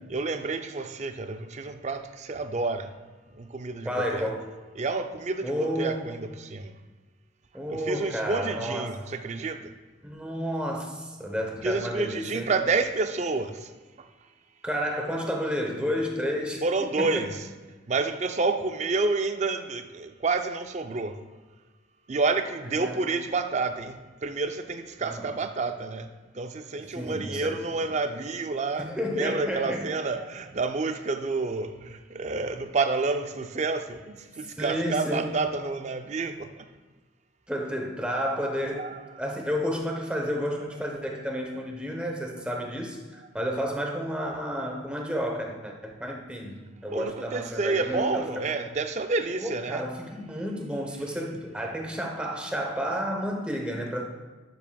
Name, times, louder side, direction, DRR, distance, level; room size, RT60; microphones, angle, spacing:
voice 1, 0.1-2.9 3.3-4.3 4.8-6.7 7.7-9.7 11.6-13.7 14.0-14.1 16.6-17.5 17.9-21.2 22.1-28.9 29.1-36.7 38.7-39.0 46.9-49.8, right 3 dB, 35° right, 8 dB, 0.4 m, -29 dB
voice 2, 3.8-4.5 5.4-6.1 7.5-8.9 10.0-12.5 14.6-16.6 17.0-17.3 22.8-23.1 25.0-25.2 26.9-27.7 28.8-29.9 34.6-35.3 37.5-38.9 39.2-48.2 48.5-48.6 49.4-54.0, equal, 5° right, 1 dB, 0.9 m, -31 dB
10.5 x 7.3 x 2.3 m, 1.3 s
head